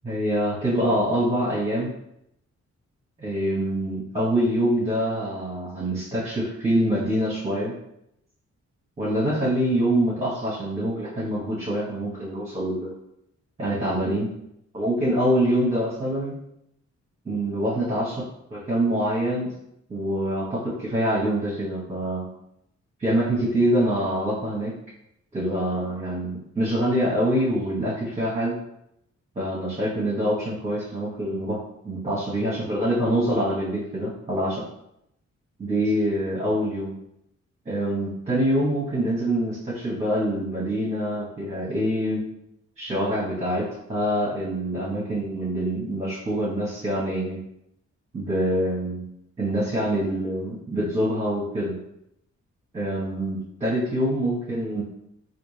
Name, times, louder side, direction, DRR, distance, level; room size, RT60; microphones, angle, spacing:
voice 1, 0.0-1.9 3.2-7.7 9.0-12.9 13.6-14.3 14.7-16.3 17.2-18.2 18.5-19.5 19.9-22.3 23.0-24.7 25.3-28.5 29.3-34.6 35.6-36.9 37.6-42.2 42.8-47.4 48.1-49.1 49.4-51.8 52.7-54.8, equal, 20° right, -8 dB, 1.2 m, -25 dB
4.2 x 2.4 x 3.2 m, 0.78 s
wide cardioid pair, 115°, 29 cm